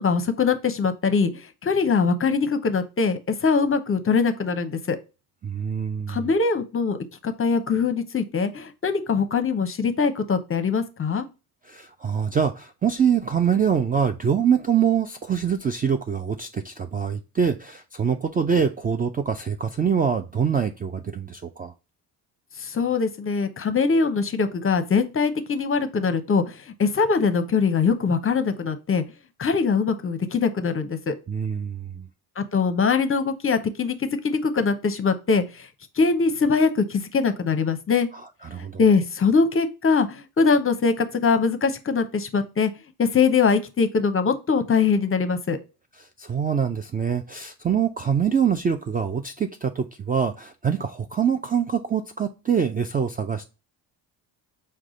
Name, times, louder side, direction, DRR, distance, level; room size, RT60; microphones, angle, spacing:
voice 1, 0.0-5.0 6.1-7.0 7.2-11.2 22.6-29.0 29.4-31.1 32.4-35.7 36.0-38.1 38.8-42.7 43.0-45.6, left 5 dB, 30° left, 10 dB, 0.7 m, -22 dB
voice 2, 5.4-6.3 11.7-21.7 31.3-32.1 38.4-38.8 46.0-53.5, right 7 dB, 20° right, 7 dB, 0.3 m, -24 dB
4.7 x 2.3 x 3.7 m, 0.29 s
supercardioid pair, 55°, 46 cm